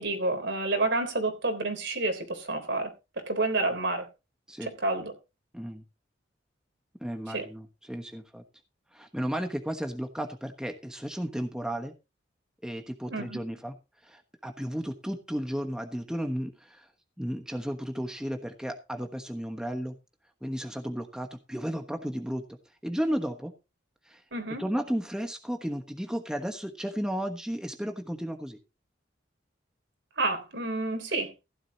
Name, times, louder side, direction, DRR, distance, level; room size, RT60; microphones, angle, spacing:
voice 1, 0.0-2.9 3.3-4.1 4.6-5.1 7.3-7.5 13.1-13.4 24.3-24.6 30.2-31.3, right 2 dB, 70° right, 3.6 m, -29 dB
voice 2, 7.0-8.4 8.9-11.9 12.6-13.7 14.0-16.9 17.2-20.0 20.4-22.4 22.8-23.5 24.1-24.2 24.6-28.6, equal, 5° right, 1.2 m, -33 dB
15.5 x 11.0 x 2.9 m
head